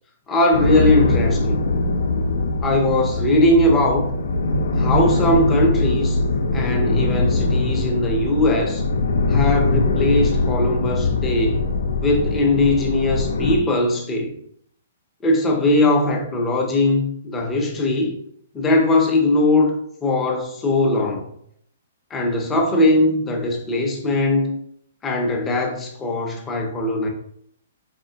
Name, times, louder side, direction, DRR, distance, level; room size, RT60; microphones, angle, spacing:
voice 1, 0.3-1.6 2.6-4.1 4.8-6.2 6.5-8.8 9.3-11.6 12.0-14.3 15.2-18.2 18.5-19.7 20.0-21.3 22.1-24.6 25.0-27.1, left 1 dB, 10° left, 0 dB, 0.5 m, -20 dB
sound 1, 0.5-13.6, left 3 dB, 85° left, 0.5 m, -21 dB
4.2 x 2.8 x 2.7 m, 0.67 s
hypercardioid pair, 175°, 0 cm